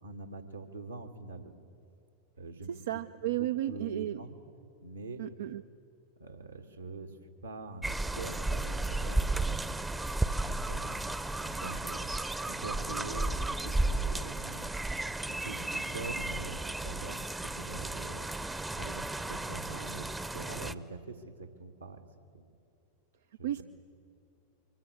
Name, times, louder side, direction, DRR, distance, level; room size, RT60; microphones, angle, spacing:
voice 1, 0.0-1.6 2.4-2.7 3.3-4.4 4.8-5.2 6.2-9.6 9.9-10.0 10.4-11.1 11.4-12.1 12.5-14.7 15.2-18.3 18.7-22.0 22.3-22.5 23.4-23.6, right 3 dB, 80° right, 4 dB, 2.2 m, -44 dB
voice 2, 2.7-4.2 5.2-5.6 23.4-23.6, right 13 dB, 60° right, 10 dB, 0.5 m, -33 dB
sound 1, 7.8-20.7, right 2 dB, 10° right, 0.8 m, -34 dB
25.0 x 22.0 x 8.6 m, 2.7 s
figure-of-eight pair, 90°, 0 cm